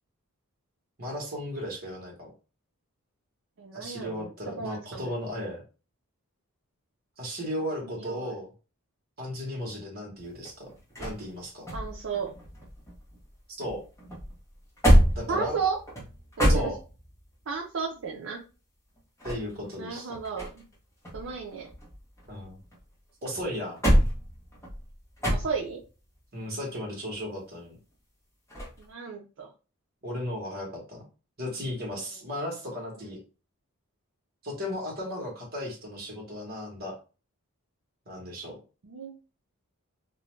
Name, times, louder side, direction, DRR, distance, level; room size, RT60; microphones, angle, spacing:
voice 1, 1.0-2.3 3.7-5.6 7.2-8.5 9.2-10.7 11.0-11.7 13.6-13.8 15.1-15.6 16.5-16.8 19.2-20.1 22.3-22.6 23.2-23.8 26.3-27.8 30.0-31.0 31.4-33.2 34.4-37.0 38.1-38.5, left 1 dB, 45° right, -1 dB, 1.0 m, -35 dB
voice 2, 3.6-5.1 7.8-8.3 11.7-12.3 15.3-15.8 16.4-16.7 17.5-18.4 19.8-20.6 21.1-21.7 25.2-25.8 28.8-29.5 31.9-32.2 33.0-33.1 38.8-39.2, right 5 dB, 65° right, 0 dB, 0.5 m, -34 dB
sound 1, 10.2-13.3 13.6-17.2 19.0-20.7 21.0-22.8 23.3-25.9 28.5-28.8, equal, 15° left, 0.8 m, -27 dB
2.5 x 2.1 x 3.0 m, 0.33 s
head